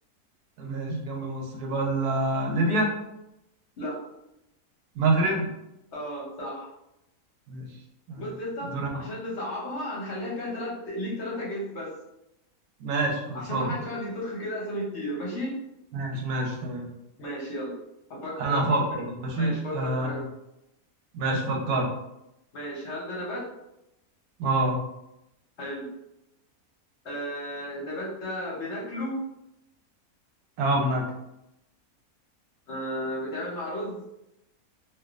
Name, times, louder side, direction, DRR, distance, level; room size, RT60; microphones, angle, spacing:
voice 1, 0.6-2.9 4.9-5.5 7.5-7.7 8.1-8.2 8.6-8.9 12.8-13.7 15.9-16.9 18.4-20.2 21.1-21.9 24.4-24.8 30.6-31.0, right 2 dB, 80° right, 0 dB, 1.2 m, -26 dB
voice 2, 5.9-6.7 8.2-11.9 13.3-15.5 17.2-17.7 18.1-19.0 19.4-20.2 22.5-23.5 25.6-25.9 27.0-29.2 30.9-31.0 32.7-34.0, equal, 55° left, -4 dB, 1.0 m, -34 dB
3.4 x 2.6 x 2.4 m, 0.86 s
omnidirectional pair, 1.6 m